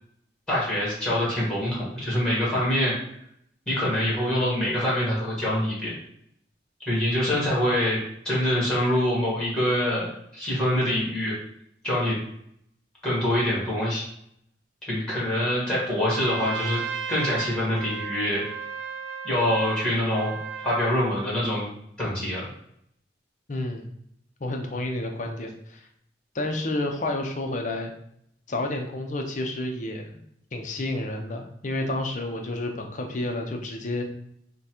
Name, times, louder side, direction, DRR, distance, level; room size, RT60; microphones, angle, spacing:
voice 1, 0.5-2.9 3.7-5.9 6.8-8.0 8.2-11.3 11.8-12.2 13.0-14.0 14.9-16.8 17.1-18.4 19.2-20.4 20.6-21.6 22.0-22.5, left 1 dB, 5° left, -6 dB, 1.5 m, -25 dB
Trumpet, 15.9-21.0, right 6 dB, 90° right, 0.5 m, -35 dB
voice 2, 23.5-23.9 24.4-25.9 26.3-27.9 28.5-30.1 30.5-34.0, left 2 dB, 45° left, 3 dB, 0.6 m, -30 dB
5.5 x 2.2 x 3.0 m, 0.73 s
head